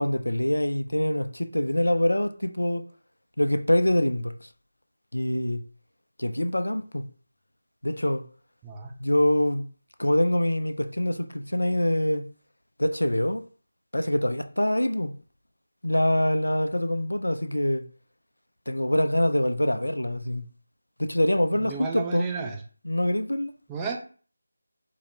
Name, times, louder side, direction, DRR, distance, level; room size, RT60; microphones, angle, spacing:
voice 1, 0.0-2.8 3.4-4.5 5.1-5.6 6.2-7.1 7.8-8.2 9.0-9.7 10.0-12.3 12.8-13.4 13.9-15.1 15.8-17.9 18.7-20.4 21.0-22.3 22.8-23.5, left 1 dB, 75° left, 0.3 m, -25 dB
voice 2, 21.6-22.6 23.7-24.0, right 5 dB, 10° right, 0.3 m, -32 dB
2.1 x 2.0 x 3.0 m
figure-of-eight pair, 160°, 0 cm